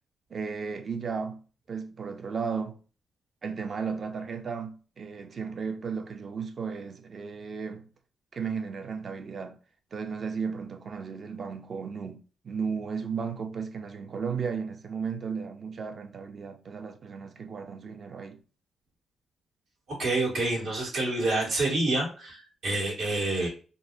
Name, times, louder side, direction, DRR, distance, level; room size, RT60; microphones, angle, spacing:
voice 1, 0.3-1.4 1.7-2.8 3.4-7.9 8.3-9.6 9.9-18.4, right 5 dB, 50° right, 0.5 m, -34 dB
voice 2, 19.9-23.5, right 2 dB, 80° right, 1.7 m, -28 dB
3.9 x 2.0 x 2.6 m
cardioid pair, 90°, 0 cm